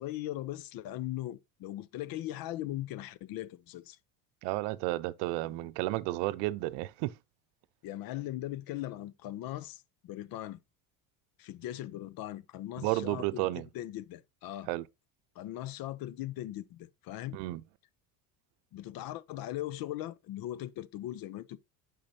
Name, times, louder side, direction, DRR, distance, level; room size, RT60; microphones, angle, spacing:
voice 1, 0.0-4.0 7.8-10.6 11.4-14.7 15.4-17.4 18.7-21.6, left 14 dB, 55° left, 0.7 m, -39 dB
voice 2, 4.4-7.1 12.8-13.6 14.7-14.8 17.3-17.6, right 18 dB, 75° right, 0.7 m, -32 dB
8.6 x 5.5 x 2.7 m
supercardioid pair, 115°, 43 cm